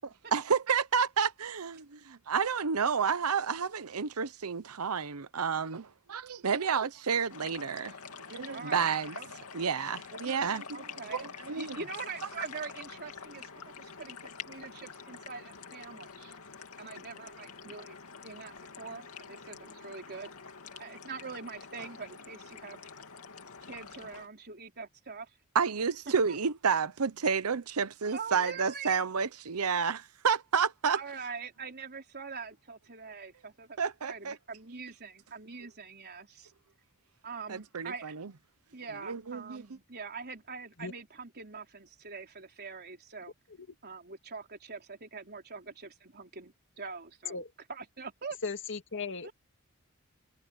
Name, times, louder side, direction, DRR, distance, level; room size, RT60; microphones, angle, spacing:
voice 1, 0.0-7.9 8.3-9.2 9.5-10.8 11.1-11.8 25.5-31.0 33.8-34.4 37.5-38.3 39.1-39.6, right 6 dB, 90° right, 0.8 m, -30 dB
sound 1, 7.3-24.3, left 5 dB, 80° left, 2.5 m, -47 dB
voice 2, 8.5-9.3 10.7-11.3 11.6-16.3 16.8-18.0 18.2-20.3 20.7-22.9 23.6-25.4 26.1-26.4 28.1-29.0 30.9-33.8 34.1-36.5 37.2-38.2 38.7-43.3 43.8-47.4 47.7-48.4 49.2-49.3, right 5 dB, 50° right, 4.0 m, -44 dB
voice 3, 48.4-49.3, left 4 dB, 60° left, 2.2 m, -37 dB
head